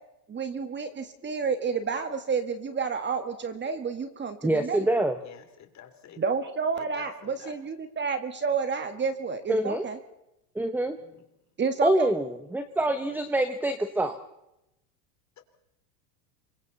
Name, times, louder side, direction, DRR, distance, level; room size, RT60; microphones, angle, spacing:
voice 1, 0.3-4.9 6.2-10.0 11.6-12.1, right 5 dB, 20° right, 9 dB, 1.9 m, -30 dB
voice 2, 4.4-5.1 9.5-9.8 10.5-11.0 11.8-14.1, right 1 dB, 5° right, 10 dB, 1.0 m, -25 dB
voice 3, 5.2-6.2 6.7-7.5 11.0-11.2 12.9-13.1 15.4-15.5, left 9 dB, 35° left, 6 dB, 3.4 m, -48 dB
27.0 x 23.5 x 4.1 m, 0.86 s
hypercardioid pair, 115°, 49 cm